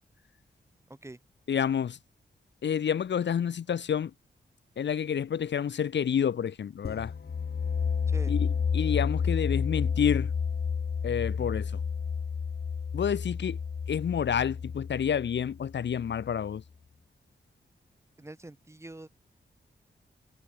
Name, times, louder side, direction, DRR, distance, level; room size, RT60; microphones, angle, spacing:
voice 1, 1.5-2.0 2.6-4.1 4.8-7.1 8.3-8.5 8.7-10.3 11.0-11.7 12.9-13.6 13.9-16.6, left 8 dB, 75° left, 1.1 m, -29 dB
sound 1, 6.8-16.4, left 6 dB, 60° left, 5.8 m, -31 dB
voice 2, 18.2-19.1, right 2 dB, 15° right, 7.8 m, -44 dB
wide cardioid pair, 175°, 18 cm